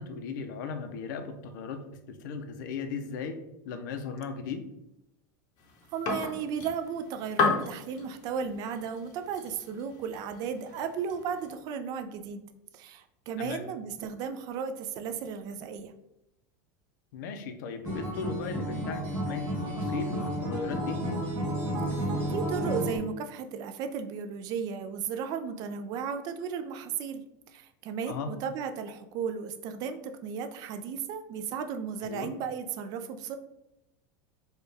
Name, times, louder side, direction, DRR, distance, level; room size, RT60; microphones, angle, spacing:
voice 1, 0.0-1.8 2.1-3.4 3.6-4.6 13.4-13.6 17.1-21.0 28.1-28.3 32.0-32.3, left 5 dB, 75° left, 7 dB, 0.5 m, -37 dB
sound 1, 5.6-11.5, left 4 dB, 40° left, 0.7 m, -34 dB
voice 2, 5.9-12.4 12.7-15.9 22.0-27.2 27.5-33.4, right 6 dB, 40° right, 8 dB, 0.4 m, -35 dB
Acoustic guitar, 17.9-23.0, equal, 25° right, 1.3 m, -31 dB
4.3 x 2.3 x 3.3 m, 0.88 s
supercardioid pair, 155°, 10 cm